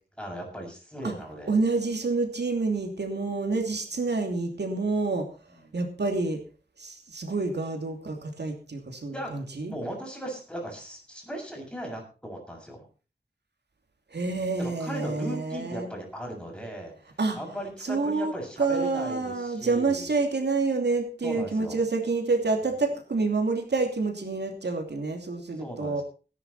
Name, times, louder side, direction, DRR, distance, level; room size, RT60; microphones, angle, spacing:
voice 1, 0.2-1.5 5.6-5.8 9.1-12.9 14.6-16.9 17.4-20.1 21.2-21.8 25.6-26.0, right 1 dB, 5° left, 1 dB, 7.3 m, -37 dB
voice 2, 1.5-5.3 5.7-6.4 6.8-9.7 14.1-15.9 17.2-17.4 17.8-18.3 18.6-26.0, right 3 dB, 90° right, 4 dB, 2.8 m, -28 dB
18.0 x 10.0 x 4.3 m, 0.35 s
wide cardioid pair, 80°, 17 cm